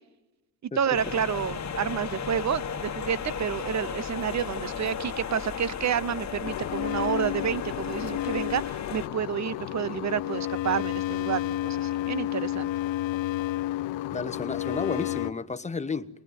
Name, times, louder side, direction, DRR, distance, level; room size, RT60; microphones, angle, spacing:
voice 1, 0.6-12.7, right 8 dB, 35° right, 0.9 m, -29 dB
sound 1, 0.9-9.1, left 7 dB, 35° left, 1.5 m, -35 dB
sound 2, 6.4-15.3, left 14 dB, 75° left, 0.9 m, -31 dB
voice 2, 14.1-16.1, left 4 dB, 15° left, 1.1 m, -32 dB
27.0 x 20.5 x 9.5 m
cardioid pair, 90°, 46 cm